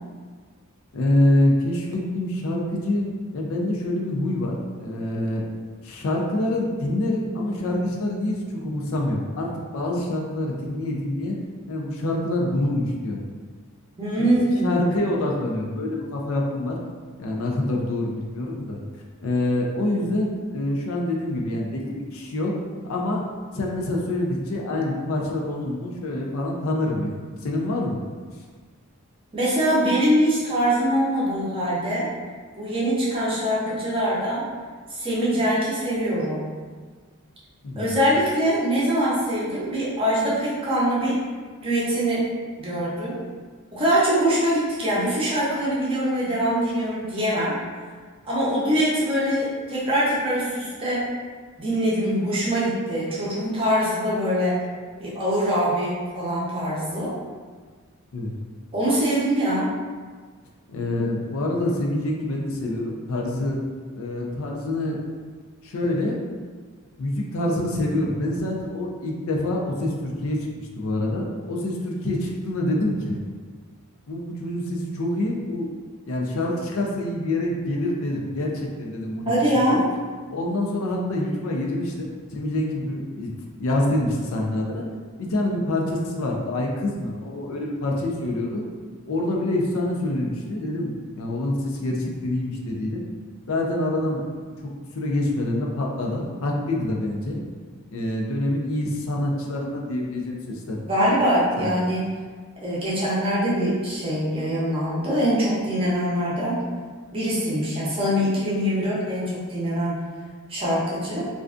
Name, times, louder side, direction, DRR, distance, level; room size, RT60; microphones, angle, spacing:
voice 1, 0.9-4.5 4.8-5.4 5.8-11.4 11.7-13.2 14.2-16.8 17.2-18.8 19.2-22.5 22.9-23.2 23.5-28.0 37.6-38.0 58.1-58.3 60.7-63.6 64.0-65.0 65.6-66.2 67.0-73.2 74.1-75.7 76.1-79.8 80.3-83.3 83.6-84.8 85.2-88.6 89.1-93.0 93.5-94.2 94.6-97.4 97.9-100.8 101.6-101.7, left 1 dB, 65° left, -1 dB, 0.4 m, -26 dB
voice 2, 14.0-14.8 29.3-32.1 32.6-34.4 34.9-36.4 37.8-41.2 41.6-42.3 42.6-43.2 43.7-47.5 48.3-51.1 51.6-54.6 55.0-57.1 58.7-59.7 79.3-79.8 100.9-102.0 102.6-106.6 107.1-110.0 110.5-111.2, equal, 25° right, -8 dB, 0.6 m, -23 dB
2.4 x 2.2 x 2.4 m, 1.5 s
head